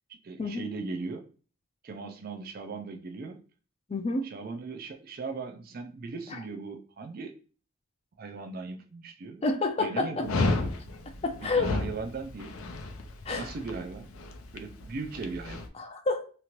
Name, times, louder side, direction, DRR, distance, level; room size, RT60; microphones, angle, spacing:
voice 1, 0.1-1.2 1.8-3.4 4.2-7.3 8.2-9.4 9.8-10.7 11.4-12.6 13.4-14.2 14.5-15.7, right 4 dB, 45° right, 0.4 m, -38 dB
voice 2, 3.9-4.3 6.3-6.4 9.4-10.3 11.2-11.7 13.3-13.5 15.7-16.3, left 3 dB, 30° left, 0.4 m, -29 dB
Dog, 10.2-15.7, left 3 dB, 85° left, 0.5 m, -33 dB
2.9 x 2.4 x 2.9 m
head